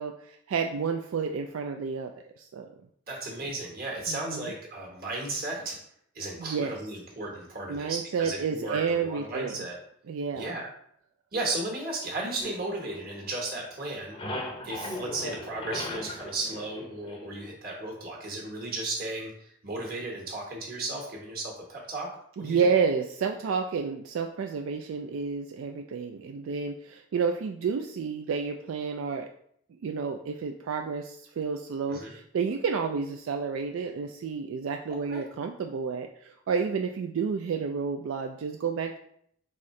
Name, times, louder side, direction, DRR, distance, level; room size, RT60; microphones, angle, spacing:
voice 1, 0.0-2.1 2.4-2.7 4.1-4.5 6.4-6.7 7.7-9.6 10.1-10.5 22.4-29.3 29.8-39.0, right 5 dB, 85° right, 4 dB, 0.3 m, -30 dB
voice 2, 3.1-5.8 6.1-9.8 10.3-10.7 11.3-14.1 14.6-22.1 22.4-22.7 31.9-32.1 35.1-35.2, right 2 dB, 45° right, -1 dB, 1.3 m, -35 dB
sound 1, 12.4-13.5 13.8-17.5, left 1 dB, 25° left, 0.5 m, -38 dB
4.2 x 3.6 x 3.2 m, 0.66 s
head